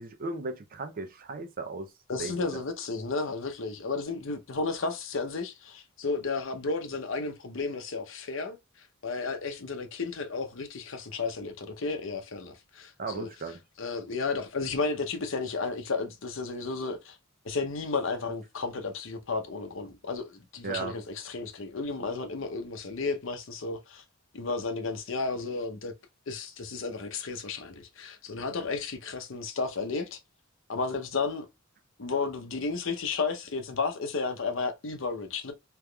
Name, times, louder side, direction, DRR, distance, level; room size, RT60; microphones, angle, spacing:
voice 1, 0.0-1.9 2.2-2.6 13.0-13.6 20.6-20.9, right 3 dB, 45° right, 0.6 m, -36 dB
voice 2, 2.1-13.3 13.8-17.2 17.4-24.0 24.3-25.9 26.3-30.2 30.7-31.5 32.0-35.5, left 4 dB, 65° left, 0.7 m, -33 dB
3.4 x 2.9 x 2.3 m
head